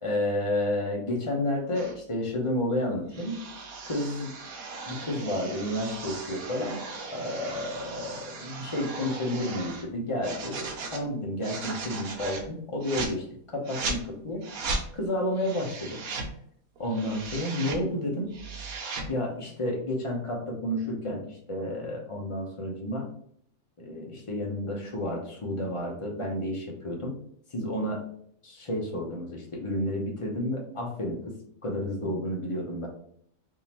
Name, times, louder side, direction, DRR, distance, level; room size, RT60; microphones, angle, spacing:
voice 1, 0.0-3.4 3.8-4.3 4.9-6.8 7.1-14.5 14.9-16.0 16.8-18.3 19.1-23.1 23.8-27.1 27.5-28.1 28.4-31.4 31.6-32.9, left 1 dB, 30° left, -1 dB, 0.6 m, -31 dB
sound 1, 1.7-1.9 3.1-9.8 10.2-11.0 11.4-12.5 12.8-13.1 13.6-14.0 14.4-14.8 15.4-16.3 16.8-17.8 18.2-19.1, right 3 dB, 85° right, 1.2 m, -37 dB
3.6 x 2.8 x 2.9 m, 0.64 s
omnidirectional pair, 1.5 m